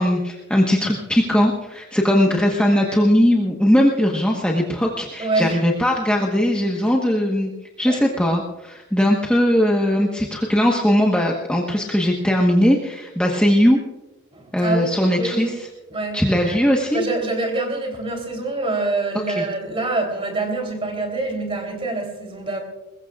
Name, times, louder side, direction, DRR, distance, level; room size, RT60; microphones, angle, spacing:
voice 1, 0.0-7.5 7.8-13.8 14.5-15.5 16.1-17.0 19.3-19.4, equal, 5° left, -2 dB, 1.2 m, -19 dB
voice 2, 5.2-5.6 7.9-8.0 14.3-15.5 15.9-16.2 16.9-22.6, right 2 dB, 25° right, 3 dB, 3.3 m, -25 dB
22.5 x 21.0 x 2.4 m, 1.0 s
head